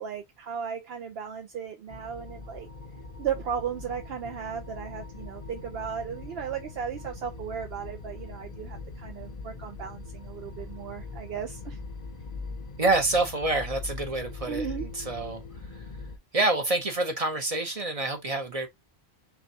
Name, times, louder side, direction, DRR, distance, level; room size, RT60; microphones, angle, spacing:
voice 1, 0.0-2.7 3.2-11.8 14.5-14.9, right 7 dB, 70° right, 0.8 m, -35 dB
sound 1, 1.9-16.2, left 3 dB, 45° left, 0.7 m, -41 dB
voice 2, 12.8-15.4 16.3-18.7, right 2 dB, 40° right, 0.7 m, -27 dB
5.8 x 2.2 x 2.7 m
omnidirectional pair, 1.1 m